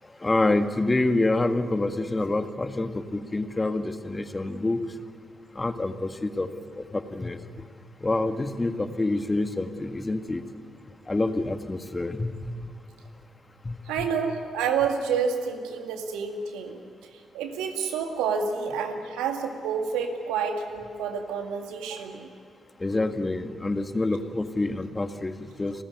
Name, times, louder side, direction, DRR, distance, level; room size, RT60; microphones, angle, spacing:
voice 1, 0.2-4.8 5.6-6.5 6.8-7.4 8.0-10.4 11.1-12.5 13.7-14.1 22.8-25.7, left 2 dB, 25° left, 8 dB, 1.8 m, -27 dB
voice 2, 13.9-16.8 17.3-22.3, right 6 dB, 80° right, 4 dB, 2.0 m, -29 dB
29.5 x 14.0 x 9.6 m, 2.2 s
hypercardioid pair, 40°, 0 cm